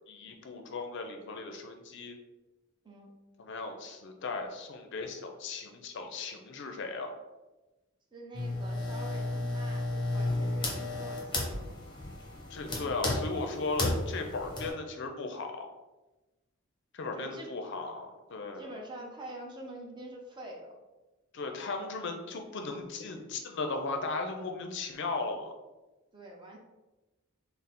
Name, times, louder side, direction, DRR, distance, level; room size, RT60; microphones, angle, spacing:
voice 1, 0.1-2.2 3.4-7.1 12.5-15.7 16.9-18.7 21.3-25.5, left 3 dB, 55° left, 4 dB, 0.5 m, -37 dB
voice 2, 8.1-11.7 17.1-17.5 18.5-20.7 26.1-26.6, right 1 dB, 20° right, -1 dB, 0.6 m, -46 dB
sound 1, 8.3-14.7, left 2 dB, 20° left, 0.8 m, -33 dB
3.8 x 2.0 x 4.1 m, 1.1 s
head